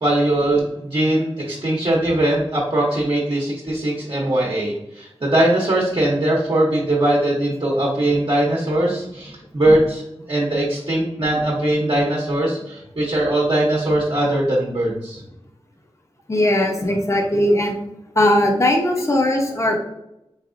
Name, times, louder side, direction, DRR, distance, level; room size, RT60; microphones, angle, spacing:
voice 1, 0.0-10.0 10.3-15.2, right 1 dB, 50° right, -4 dB, 0.9 m, -20 dB
voice 2, 16.3-17.8 18.1-19.8, left 1 dB, 30° left, 2 dB, 0.7 m, -18 dB
4.1 x 3.3 x 2.5 m, 0.87 s
wide cardioid pair, 75°, 11 cm